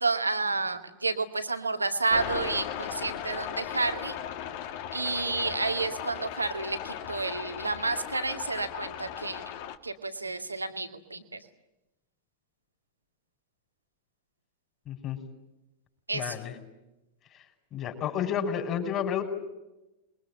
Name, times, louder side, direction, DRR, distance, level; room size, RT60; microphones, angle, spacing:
voice 1, 0.0-4.2 4.9-9.4 9.8-11.4 16.1-16.3, right 3 dB, 80° right, 7 dB, 2.1 m, -30 dB
sound 1, 2.1-9.8, left 10 dB, 50° left, 1.8 m, -37 dB
voice 2, 14.9-15.2 16.1-16.5 17.7-19.2, left 8 dB, 30° left, 7 dB, 5.6 m, -30 dB
27.5 x 22.5 x 8.9 m, 0.97 s
figure-of-eight pair, 90°, 0 cm